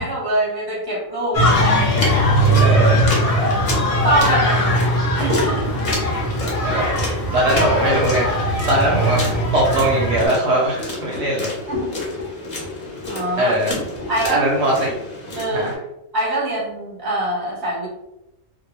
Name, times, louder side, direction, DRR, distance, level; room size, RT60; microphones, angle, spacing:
voice 1, 0.0-1.8 2.5-3.0 4.0-4.8 5.2-5.8 11.7-11.9 13.1-13.5 14.1-14.5 15.4-15.7 16.1-17.9, right 1 dB, 20° right, -4 dB, 0.7 m, -24 dB
sound 1, 1.3-10.3, equal, 70° left, 0.3 m, -19 dB
sound 2, 1.9-15.8, left 2 dB, 45° left, 0.7 m, -29 dB
voice 2, 2.6-3.1 6.6-11.5 13.4-13.7 14.2-15.0 15.5-15.7, right 1 dB, 65° right, -3 dB, 0.8 m, -21 dB
2.2 x 2.1 x 3.0 m, 0.87 s
omnidirectional pair, 1.4 m